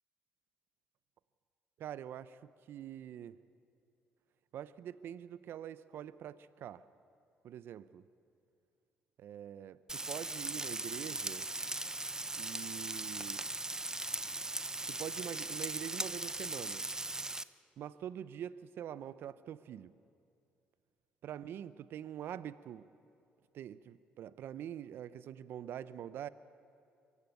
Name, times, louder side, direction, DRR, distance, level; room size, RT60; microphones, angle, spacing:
voice 1, 1.8-2.4 2.7-3.4 4.5-6.8 7.4-8.0 9.2-11.5 12.4-13.4 14.9-16.8 17.8-19.9 21.2-22.8 23.5-26.3, right 10 dB, 65° right, 16 dB, 0.7 m, -45 dB
Frying (food), 9.9-17.4, right 2 dB, 15° right, 0.7 m, -39 dB
23.5 x 15.5 x 9.3 m, 2.5 s
supercardioid pair, 65°, 4 cm